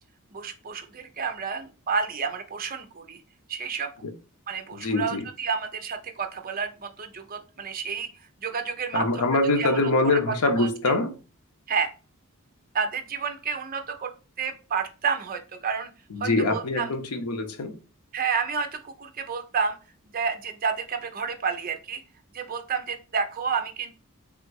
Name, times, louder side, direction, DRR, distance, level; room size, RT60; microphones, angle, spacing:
voice 1, 0.3-3.2 3.5-3.9 4.5-9.3 9.6-10.7 11.7-11.9 12.7-14.1 14.4-15.9 16.2-16.9 18.1-19.8 20.1-22.0 22.3-24.0, right 5 dB, 40° right, 0.6 m, -30 dB
voice 2, 4.7-5.2 8.9-11.1 16.1-17.8, left 2 dB, 90° left, 0.7 m, -24 dB
3.6 x 2.5 x 4.5 m
head